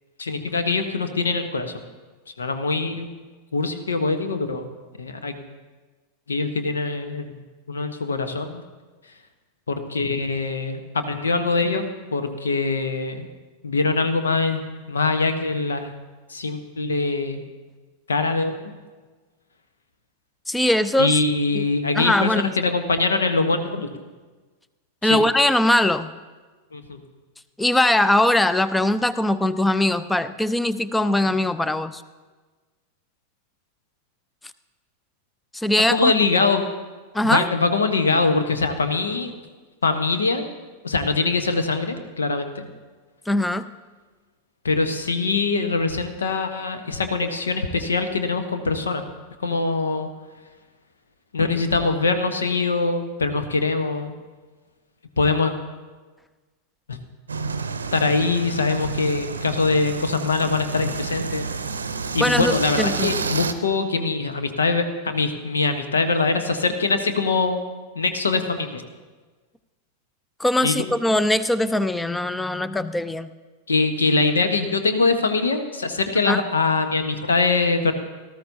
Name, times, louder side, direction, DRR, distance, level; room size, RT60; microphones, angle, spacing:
voice 1, 0.2-1.8 2.4-3.1 3.5-4.6 5.0-5.4 6.3-7.3 7.7-8.6 9.7-13.3 13.6-15.9 16.3-17.4 18.1-18.6 21.0-23.9 25.0-25.2 26.7-27.0 35.9-36.7 37.2-39.3 39.8-40.5 40.8-42.6 44.6-49.0 49.4-50.1 51.3-54.2 55.2-55.5 56.9-57.0 57.9-61.5 62.1-67.6 67.9-68.8 70.6-70.8 73.7-77.9, left 3 dB, 70° left, 8 dB, 1.0 m, -23 dB
voice 2, 20.5-21.2 21.5-21.6 21.9-22.5 25.0-26.1 27.6-32.0 35.5-36.1 37.1-37.5 43.3-43.6 62.2-63.1 70.4-73.3 76.3-76.4, left 1 dB, 5° left, 14 dB, 0.5 m, -21 dB
sound 1, 57.3-63.5, right 4 dB, 75° right, 0.6 m, -29 dB
18.5 x 13.5 x 2.7 m, 1.3 s
figure-of-eight pair, 90°, 0 cm